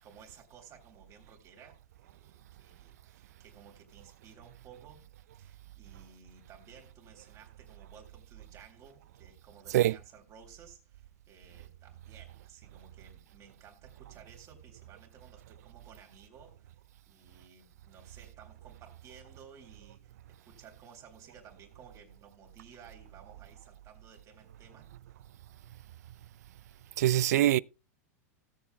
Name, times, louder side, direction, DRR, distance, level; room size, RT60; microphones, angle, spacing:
voice 1, 0.0-5.1 5.4-16.8 17.1-25.2, right 6 dB, 35° right, 3.5 m, -56 dB
voice 2, 27.0-27.6, right 13 dB, 75° right, 0.4 m, -23 dB
17.5 x 7.6 x 2.3 m
hypercardioid pair, 120°, 9 cm